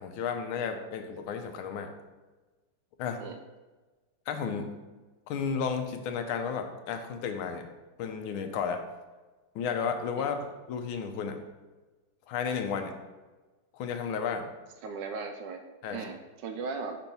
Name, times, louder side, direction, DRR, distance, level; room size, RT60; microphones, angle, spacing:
voice 1, 0.0-1.9 3.0-3.2 4.3-4.8 5.3-7.7 8.0-8.8 9.5-11.4 12.3-12.9 13.7-14.5 15.8-16.0, left 6 dB, 90° left, 6 dB, 1.6 m, -33 dB
voice 2, 14.8-15.6 15.9-17.0, right 4 dB, 75° right, 5 dB, 1.1 m, -37 dB
5.3 x 4.5 x 5.3 m, 1.2 s
omnidirectional pair, 2.2 m